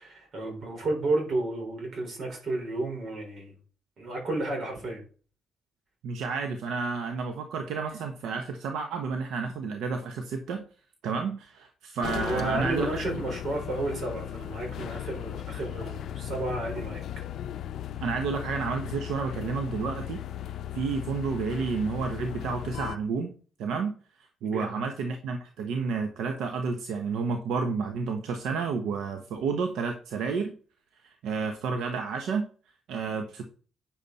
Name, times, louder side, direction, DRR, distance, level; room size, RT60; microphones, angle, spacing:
voice 1, 0.0-3.5 4.0-5.0 12.2-17.0 24.4-24.8, right 2 dB, 55° right, 2 dB, 4.7 m, -32 dB
voice 2, 6.0-10.6 11.0-13.2 18.0-20.2 20.7-23.3 23.6-23.9 24.4-30.5 31.0-32.5 32.9-33.5, right 5 dB, 85° right, 6 dB, 1.0 m, -31 dB
sound 1, 12.0-23.0, left 11 dB, 70° left, 0.5 m, -36 dB
9.1 x 7.0 x 4.2 m, 0.39 s
cardioid pair, 90°, 0 cm